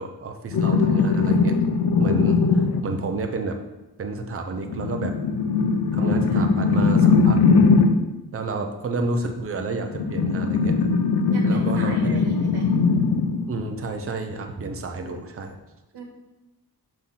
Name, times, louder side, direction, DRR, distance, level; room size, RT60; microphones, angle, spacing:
voice 1, 0.0-1.5 2.0-3.6 4.0-5.1 5.9-7.4 8.3-10.7 11.4-12.2 13.5-15.6, right 3 dB, 35° right, 5 dB, 0.6 m, -30 dB
sound 1, 0.5-3.0 4.6-8.1 9.9-13.5 15.1-15.2, left 4 dB, 70° left, 0.6 m, -20 dB
voice 2, 11.3-12.7 15.9-16.0, right 2 dB, 70° right, 0 dB, 1.6 m, -37 dB
6.0 x 3.7 x 5.5 m, 1.0 s
wide cardioid pair, 150°, 40 cm